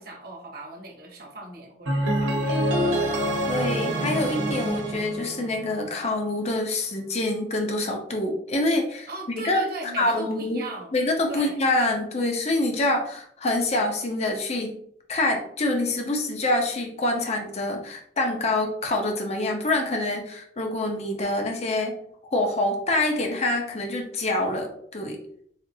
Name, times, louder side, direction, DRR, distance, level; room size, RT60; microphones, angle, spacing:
voice 1, 0.0-4.3 9.1-11.0 11.3-11.6, right 2 dB, 55° right, 0 dB, 1.0 m, -40 dB
sound 1, 1.9-5.9, right 1 dB, 85° right, 0.8 m, -26 dB
voice 2, 3.5-9.1 9.4-9.6 10.0-10.6 10.9-14.8 15.1-22.0 22.3-25.2, left 2 dB, 35° left, 2 dB, 0.6 m, -26 dB
4.1 x 2.4 x 2.6 m, 0.66 s
head